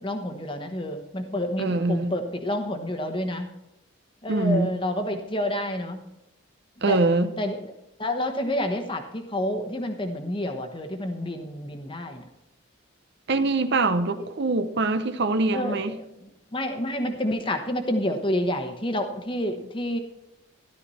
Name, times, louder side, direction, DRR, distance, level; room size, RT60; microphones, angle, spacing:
voice 1, 0.0-3.5 4.2-6.0 6.9-7.0 7.4-7.6 8.0-12.2 15.5-16.0 16.5-20.0, left 1 dB, 25° left, 1.1 m, -29 dB
voice 2, 1.6-2.1 4.3-4.8 6.8-7.3 13.3-16.0, right 2 dB, 55° right, 0.7 m, -23 dB
13.0 x 12.0 x 4.2 m
head